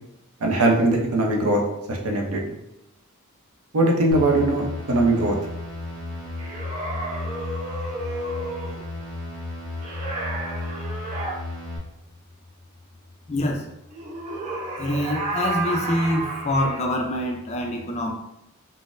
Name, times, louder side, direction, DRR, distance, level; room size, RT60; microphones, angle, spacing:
voice 1, 0.4-1.6 1.9-2.4 3.7-5.4, right 2 dB, 80° right, 0 dB, 0.6 m, -20 dB
sound 1, 4.1-11.8, left 2 dB, ahead, 0.8 m, -34 dB
sound 2, 6.4-8.8 9.8-11.4 13.9-16.8, right 2 dB, 35° right, 0.5 m, -31 dB
voice 2, 13.3-13.6 14.8-18.1, left 1 dB, 30° left, 2 dB, 0.4 m, -25 dB
3.8 x 2.0 x 2.5 m, 0.88 s
head